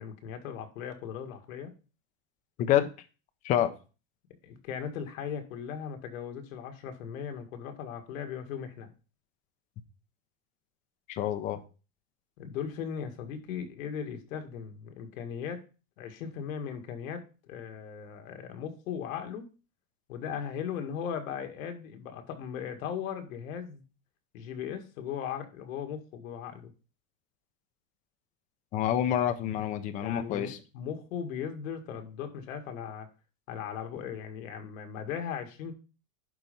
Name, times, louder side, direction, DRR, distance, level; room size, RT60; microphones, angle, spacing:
voice 1, 0.0-1.7 4.4-8.9 12.4-15.6 16.0-19.5 20.1-23.8 24.3-26.7 30.0-33.1 33.5-35.7, left 8 dB, 80° left, 6 dB, 2.0 m, -38 dB
voice 2, 2.6-2.9 3.4-3.7 11.1-11.6 28.7-30.6, left 11 dB, 20° left, 10 dB, 0.5 m, -27 dB
11.0 x 4.4 x 5.3 m, 0.34 s
supercardioid pair, 170°, 40 cm